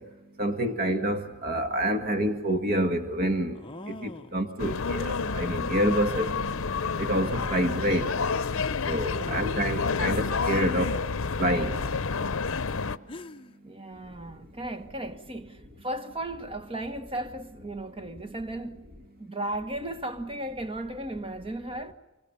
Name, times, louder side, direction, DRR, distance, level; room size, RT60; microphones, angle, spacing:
voice 1, 0.4-3.6 4.0-6.3 7.0-8.0 8.9-11.0 11.4-11.7, right 1 dB, 45° right, 1.7 m, -27 dB
sound 1, 2.1-2.2 3.5-4.4 6.2-6.6 7.6-7.7 8.2-8.3 10.4-10.8 12.7-12.8 13.1-13.6, left 1 dB, 25° left, 0.8 m, -43 dB
sound 2, 4.6-13.0, left 4 dB, 65° left, 0.8 m, -29 dB
voice 2, 13.6-18.8 19.2-21.9, right 1 dB, 25° right, 1.4 m, -35 dB
27.5 x 24.0 x 7.0 m
head